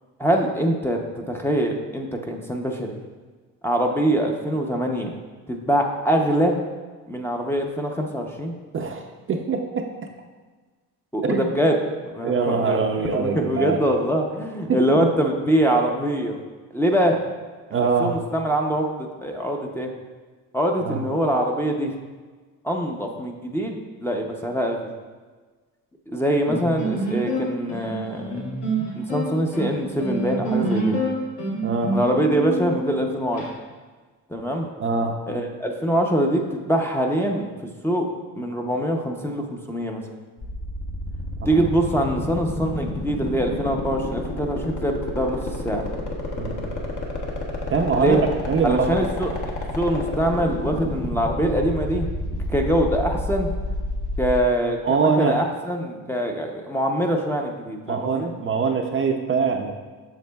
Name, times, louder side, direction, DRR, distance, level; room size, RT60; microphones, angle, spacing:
voice 1, 0.2-3.0 3.6-5.1 5.5-6.6 7.1-8.5 11.1-11.8 12.1-12.8 13.1-16.4 16.7-17.2 18.0-19.9 20.5-21.9 22.6-24.9 26.1-28.3 28.9-31.0 31.9-33.4 34.3-34.7 35.3-37.5 37.8-38.1 38.4-40.0 41.5-45.8 47.9-48.2 48.6-49.3 49.8-53.5 54.2-58.3, right 1 dB, 5° left, 1 dB, 0.6 m, -24 dB
voice 2, 8.7-9.9 11.2-11.5 12.2-13.8 14.7-15.1 17.7-18.2 20.8-21.0 31.6-32.0 34.8-35.2 41.5-41.7 46.4-46.7 47.7-48.2 48.5-49.0 54.8-55.4 57.9-59.7, right 5 dB, 35° right, 3 dB, 0.5 m, -23 dB
sound 1, 26.5-33.5, right 1 dB, 85° left, 2.1 m, -27 dB
sound 2, 40.4-54.4, left 2 dB, 55° left, 1.3 m, -29 dB
8.1 x 6.5 x 2.3 m, 1.4 s
cardioid pair, 110°, 37 cm